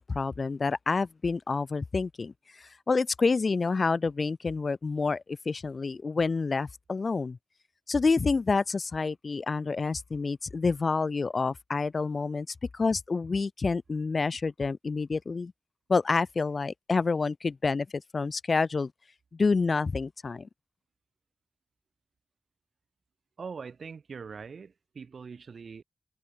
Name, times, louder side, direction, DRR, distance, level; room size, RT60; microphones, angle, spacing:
voice 1, 0.0-2.3 2.6-7.4 7.9-12.5 12.7-15.5 15.9-18.9 19.3-20.5, left 4 dB, 55° left, 0.4 m, -28 dB
voice 2, 23.4-25.8, right 5 dB, 70° right, 1.7 m, -42 dB
wide cardioid pair, 75°, 0 cm